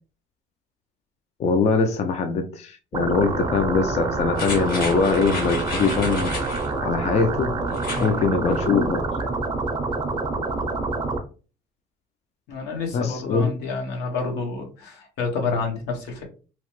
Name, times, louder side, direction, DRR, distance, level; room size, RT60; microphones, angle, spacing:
voice 1, 1.4-6.3 6.8-7.5 8.0-9.1 12.9-13.5, left 4 dB, 40° left, 0.4 m, -22 dB
sound 1, 2.9-11.2, right 3 dB, 25° right, 0.5 m, -27 dB
sound 2, 4.3-6.7 7.7-8.1 8.5-8.6, left 2 dB, 60° left, 1.2 m, -33 dB
voice 2, 12.5-16.2, left 4 dB, 80° left, 1.0 m, -29 dB
2.9 x 2.0 x 2.9 m
cardioid pair, 110°, 17 cm